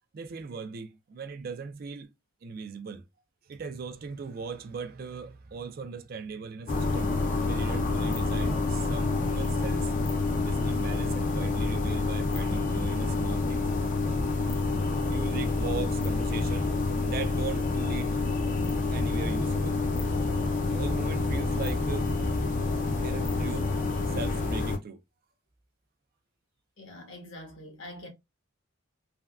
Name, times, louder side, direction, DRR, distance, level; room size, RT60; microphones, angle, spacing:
voice 1, 0.1-2.1 2.4-3.0 3.5-7.1 7.5-10.1 10.4-13.7 14.9-16.7 17.0-18.1 18.9-19.8 20.6-22.1 22.9-23.7 24.1-25.0, right 5 dB, 45° right, 0.3 m, -39 dB
sound 1, 6.7-24.8, left 3 dB, 40° left, 0.5 m, -28 dB
voice 2, 26.8-28.1, left 1 dB, 65° left, 1.2 m, -44 dB
3.3 x 2.2 x 2.3 m
head